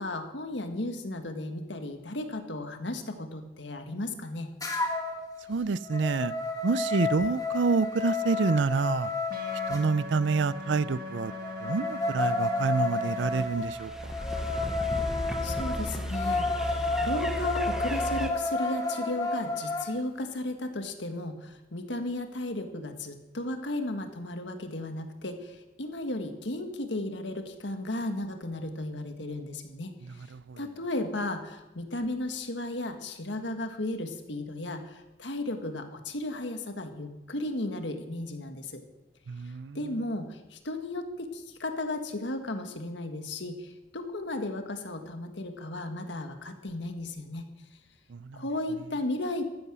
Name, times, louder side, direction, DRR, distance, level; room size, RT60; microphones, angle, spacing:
voice 1, 0.0-4.5 15.4-38.8 39.7-47.4 48.3-49.4, left 1 dB, 75° left, 6 dB, 1.7 m, -35 dB
sound 1, 4.6-5.2 5.6-9.8 11.3-19.9, left 3 dB, 20° left, 1.8 m, -31 dB
voice 2, 5.5-6.3 6.6-9.1 9.7-11.3 11.6-13.9 30.0-30.6 39.3-39.8 48.1-48.4, right 4 dB, 80° right, 19 dB, 0.5 m, -28 dB
sound 2, 9.3-13.4, left 2 dB, 50° right, 1.8 m, -40 dB
sound 3, 13.3-18.3, equal, 5° right, 0.9 m, -34 dB
15.0 x 11.0 x 6.2 m, 1.0 s
head